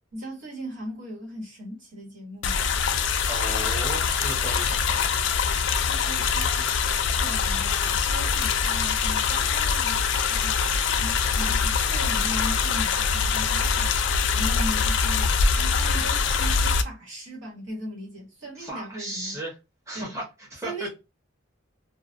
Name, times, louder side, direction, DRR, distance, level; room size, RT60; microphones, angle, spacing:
voice 1, 0.1-2.6 5.8-6.7 7.0-10.0 10.3-19.4 19.9-20.1 20.6-20.9, equal, 65° right, 1.3 m, -38 dB
sound 1, 2.4-16.8, left 6 dB, 60° left, 0.3 m, -24 dB
voice 2, 3.3-5.0 18.5-19.6 19.9-20.9, right 1 dB, 15° right, 0.9 m, -35 dB
2.3 x 2.2 x 2.5 m
head